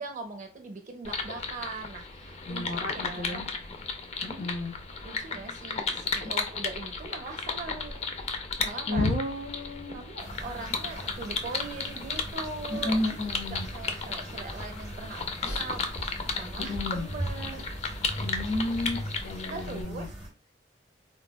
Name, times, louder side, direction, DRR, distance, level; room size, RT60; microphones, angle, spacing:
voice 1, 0.0-3.4 5.0-9.1 9.9-13.0 13.5-17.7 19.5-20.1, right 3 dB, 40° right, 4 dB, 0.5 m, -41 dB
sound 1, 1.0-19.8, left 4 dB, 35° left, 0.3 m, -35 dB
voice 2, 2.5-3.4 4.2-4.7 8.9-10.0 12.7-13.7 15.4-15.6 16.6-17.1 18.2-20.1, left 2 dB, 65° left, 2 dB, 1.0 m, -32 dB
sound 2, 10.2-20.3, right 1 dB, 5° right, 0.8 m, -39 dB
4.0 x 2.1 x 2.2 m, 0.32 s
head